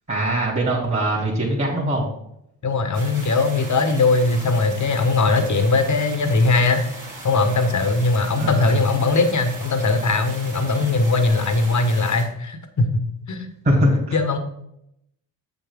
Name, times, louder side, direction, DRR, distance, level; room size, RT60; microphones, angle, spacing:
voice 1, 0.1-2.0 8.4-8.7 13.6-14.2, right 1 dB, 25° right, -3 dB, 3.0 m, -21 dB
voice 2, 2.6-6.8 7.2-13.0 13.3-13.5 14.1-14.4, left 3 dB, 45° left, 7 dB, 1.5 m, -20 dB
sound 1, 2.9-12.3, right 2 dB, 45° right, 2.8 m, -38 dB
7.6 x 6.2 x 3.7 m, 0.77 s
supercardioid pair, 50°, 41 cm